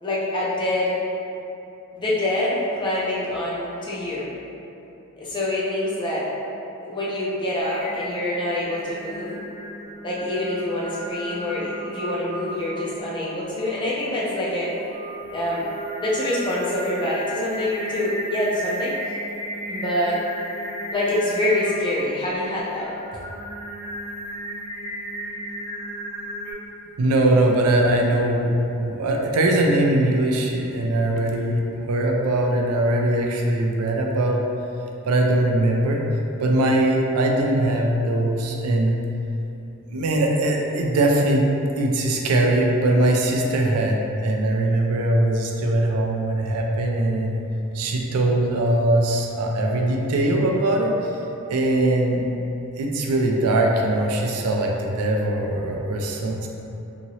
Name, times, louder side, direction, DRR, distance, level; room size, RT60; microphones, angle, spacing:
voice 1, 0.0-1.0 1.9-4.3 5.2-6.3 6.8-9.4 10.0-14.7 15.3-15.7 16.0-18.9 19.7-20.2 20.9-22.9, left 1 dB, 20° left, -7 dB, 0.5 m, -25 dB
Singing, 7.6-26.5, equal, 30° right, 0.6 m, -35 dB
voice 2, 27.0-28.5 28.8-34.4 35.0-36.0 36.4-39.0 39.9-41.5 41.8-47.4 47.7-50.9 51.5-52.2 52.8-56.5, right 1 dB, 85° right, 1 dB, 0.4 m, -21 dB
2.8 x 2.7 x 2.7 m, 2.9 s
head